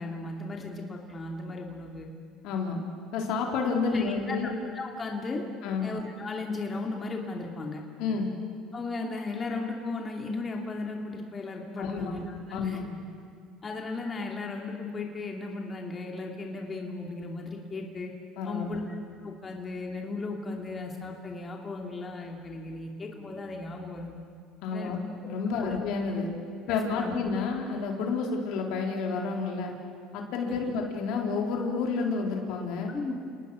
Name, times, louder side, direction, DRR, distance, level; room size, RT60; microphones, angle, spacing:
voice 1, 0.0-2.1 3.9-5.4 5.8-7.8 8.7-12.8 13.6-18.1 18.5-18.8 19.2-24.2 24.7-24.9 25.5-25.8 26.7-27.2 30.4-30.6 32.9-33.1, left 3 dB, 30° left, 1 dB, 2.8 m, -36 dB
voice 2, 2.4-2.8 3.1-4.5 5.6-5.9 8.0-8.3 11.8-12.1 12.5-12.9 18.4-18.8 24.6-26.3 26.7-29.7 30.1-32.9, left 4 dB, 70° left, 1 dB, 3.8 m, -30 dB
29.5 x 19.5 x 6.4 m, 2.3 s
supercardioid pair, 105°, 0 cm